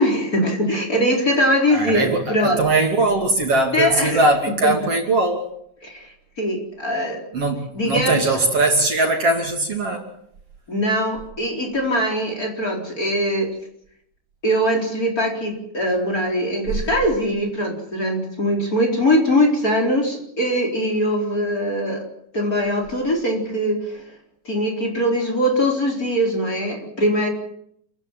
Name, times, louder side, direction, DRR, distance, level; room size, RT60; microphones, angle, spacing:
voice 1, 0.0-2.6 3.7-4.3 4.6-4.7 5.8-7.2 7.7-8.3 10.7-13.5 14.4-22.0 22.3-24.0 24.4-27.3, equal, 25° left, 2 dB, 4.6 m, -21 dB
voice 2, 1.7-5.5 7.3-10.1, right 2 dB, 45° right, 2 dB, 3.5 m, -20 dB
29.5 x 15.5 x 7.5 m, 0.71 s
omnidirectional pair, 3.8 m